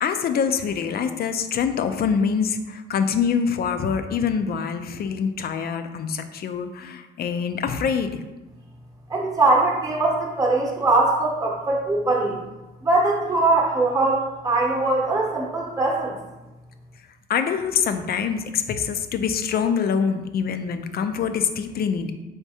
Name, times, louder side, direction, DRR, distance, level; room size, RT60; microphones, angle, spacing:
voice 1, 0.0-8.2 17.3-22.1, left 6 dB, 50° left, 9 dB, 0.4 m, -25 dB
voice 2, 9.1-12.4 12.8-16.2, right 2 dB, 20° right, -2 dB, 0.9 m, -21 dB
3.9 x 3.5 x 2.8 m, 1.1 s
cardioid pair, 90°, 20 cm